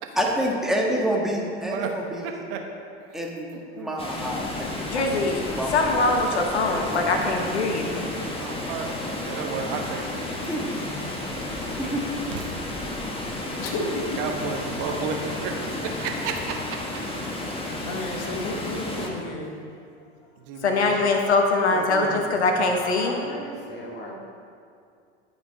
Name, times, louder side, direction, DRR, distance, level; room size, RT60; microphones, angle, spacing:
voice 1, 0.1-2.3 3.1-4.7 4.9-6.2 10.3-10.8 11.8-12.0, equal, ahead, -2 dB, 1.5 m, -28 dB
voice 2, 2.2-2.6 3.1-3.2 3.8-3.9 6.8-6.9 8.3-10.2 11.7-11.8 13.6-16.8 17.8-18.0 19.0-19.1 20.4-21.1 21.7-22.3, right 5 dB, 60° right, 3 dB, 1.2 m, -33 dB
Water, 4.0-19.1, left 1 dB, 15° left, 1.4 m, -32 dB
voice 3, 4.9-8.1 20.6-23.1, left 3 dB, 90° left, 3 dB, 1.0 m, -23 dB
voice 4, 13.6-14.2 17.8-19.6, left 2 dB, 55° left, 2 dB, 1.3 m, -32 dB
voice 5, 22.8-24.2, left 1 dB, 30° left, -1 dB, 2.0 m, -36 dB
11.0 x 5.0 x 4.1 m, 2.4 s
hypercardioid pair, 80°, 32 cm